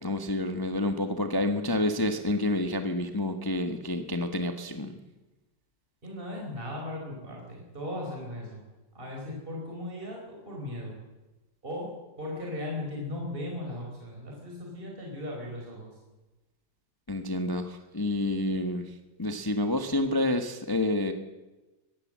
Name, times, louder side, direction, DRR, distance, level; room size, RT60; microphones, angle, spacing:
voice 1, 0.0-4.9 17.1-18.8 19.2-21.1, left 1 dB, 15° left, 6 dB, 1.0 m, -28 dB
voice 2, 6.0-8.6 8.9-10.9 11.6-11.9 12.2-15.9, left 1 dB, 25° right, -1 dB, 4.7 m, -37 dB
22.0 x 15.5 x 7.6 m, 1.1 s
omnidirectional pair, 2.4 m